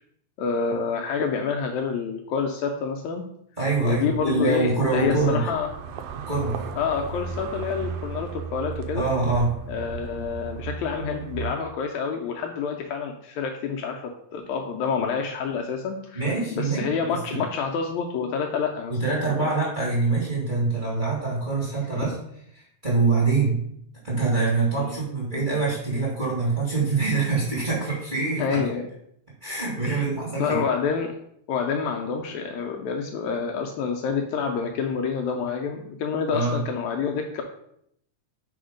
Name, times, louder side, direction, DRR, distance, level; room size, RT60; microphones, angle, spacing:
voice 1, 0.4-3.2 3.8-5.7 6.8-9.1 9.7-19.0 19.3-19.5 22.0-22.1 23.4-23.5 24.8-25.0 28.4-28.8 29.8-30.1 30.4-31.1 31.5-37.4, left 6 dB, 80° left, 3 dB, 1.7 m, -28 dB
voice 2, 3.6-5.5 6.3-6.7 8.9-9.5 16.1-16.9 17.3-17.4 18.9-22.2 22.5-23.6 24.0-28.6 29.4-30.6 36.3-36.6, right 3 dB, 20° right, -6 dB, 1.4 m, -24 dB
sound 1, 3.8-11.5, right 6 dB, 85° right, 1.5 m, -36 dB
4.6 x 4.3 x 5.0 m, 0.73 s
omnidirectional pair, 3.5 m